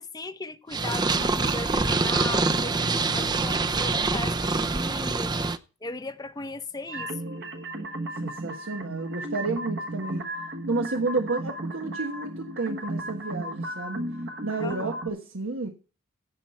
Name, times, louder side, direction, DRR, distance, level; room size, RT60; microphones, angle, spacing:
voice 1, 0.0-5.3 5.8-7.2 14.6-14.9, left 2 dB, 20° left, 0.7 m, -37 dB
Purr, 0.7-5.6, right 3 dB, 20° right, 0.6 m, -25 dB
voice 2, 2.7-3.5 8.2-10.2 10.7-14.1 14.4-15.7, right 3 dB, 80° right, 1.4 m, -31 dB
sound 1, 6.9-15.1, right 1 dB, 55° right, 1.3 m, -35 dB
16.0 x 5.9 x 4.4 m
head